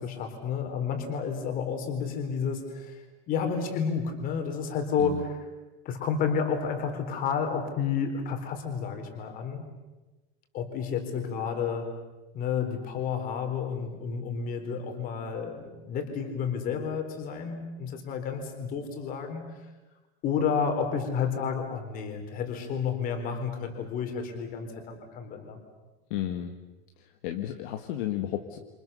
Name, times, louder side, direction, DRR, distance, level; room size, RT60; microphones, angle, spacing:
voice 1, 0.0-5.4 5.8-9.6 10.5-11.9 12.3-19.4 20.2-25.6, left 6 dB, 25° left, 5 dB, 4.0 m, -31 dB
voice 2, 26.1-26.5 27.0-28.6, left 12 dB, 45° left, 4 dB, 1.8 m, -33 dB
28.5 x 28.0 x 6.9 m, 1.1 s
supercardioid pair, 180°, 34 cm